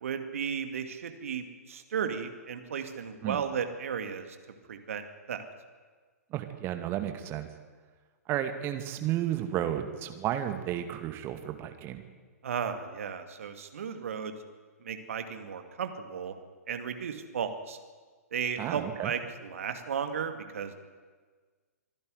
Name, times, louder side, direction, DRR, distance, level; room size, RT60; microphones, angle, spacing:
voice 1, 0.0-4.3 4.7-5.4 12.4-14.3 14.8-16.3 16.7-17.8 18.3-20.7, right 7 dB, 60° right, 7 dB, 2.3 m, -34 dB
voice 2, 6.3-7.5 8.3-12.0 18.6-19.1, right 11 dB, 25° right, 7 dB, 2.0 m, -32 dB
24.5 x 11.0 x 9.7 m, 1.5 s
figure-of-eight pair, 110°, 9 cm